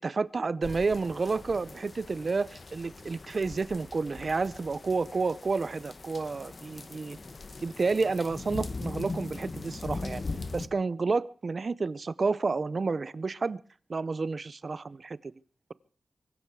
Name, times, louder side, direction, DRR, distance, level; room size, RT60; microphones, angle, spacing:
voice 1, 0.0-7.2 7.6-10.2 10.5-13.6 13.9-15.3, right 4 dB, 50° right, 0.7 m, -30 dB
sound 1, 0.6-10.7, left 3 dB, 40° left, 1.3 m, -40 dB
24.0 x 12.5 x 4.7 m
wide cardioid pair, 135°, 0 cm